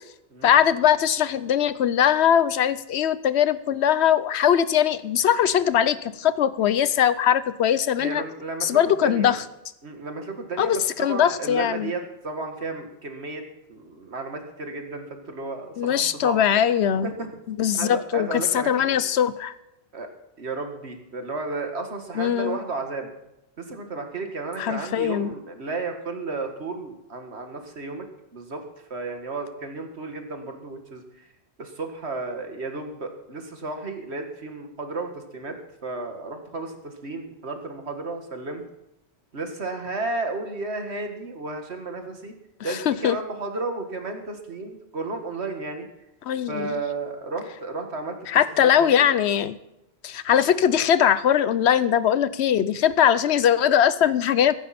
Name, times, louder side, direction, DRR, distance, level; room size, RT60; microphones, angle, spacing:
voice 1, 0.4-8.2 8.6-9.4 10.6-11.9 15.8-17.1 17.5-19.5 22.2-22.6 24.6-25.3 42.7-43.2 46.3-46.7 48.3-49.6 50.0-54.5, left 9 dB, 85° left, 16 dB, 1.0 m, -21 dB
voice 2, 8.0-9.3 9.8-13.4 13.7-16.4 16.7-17.3 17.7-19.0 19.9-20.1 20.4-23.1 23.6-28.0 28.3-28.6 28.9-31.0 31.6-38.6 39.3-42.3 42.6-45.9 46.5-48.2 48.5-48.9, right 3 dB, 85° right, 5 dB, 2.1 m, -33 dB
15.5 x 15.0 x 4.3 m, 0.92 s
omnidirectional pair, 1.1 m